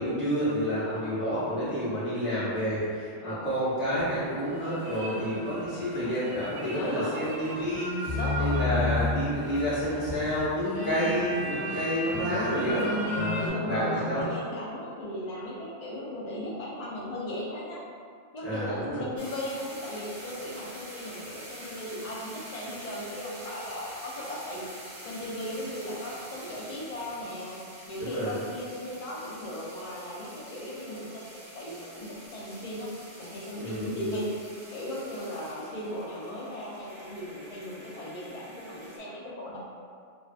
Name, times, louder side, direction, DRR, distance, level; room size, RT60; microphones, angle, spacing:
voice 1, 0.0-12.8 13.1-14.2 18.4-19.0 28.0-28.3 33.5-34.0, equal, 15° right, -13 dB, 0.5 m, -29 dB
voice 2, 0.8-1.3 2.3-2.6 3.2-3.5 5.1-5.7 6.6-7.3 8.1-9.2 10.7-11.2 12.6-13.1 13.4-17.8 18.3-24.7 25.0-27.6 27.9-31.2 31.5-32.9 33.2-34.4 34.7-39.6, left 1 dB, 75° left, -6 dB, 0.3 m, -37 dB
sound 1, 3.9-13.5, right 1 dB, 25° left, 1.0 m, -38 dB
sound 2, 4.0-4.6 8.0-11.2 11.6-14.3, left 3 dB, 50° left, 0.8 m, -33 dB
sound 3, 19.2-39.0, right 1 dB, 75° right, 0.9 m, -46 dB
2.5 x 2.2 x 2.3 m, 2.2 s
omnidirectional pair, 1.2 m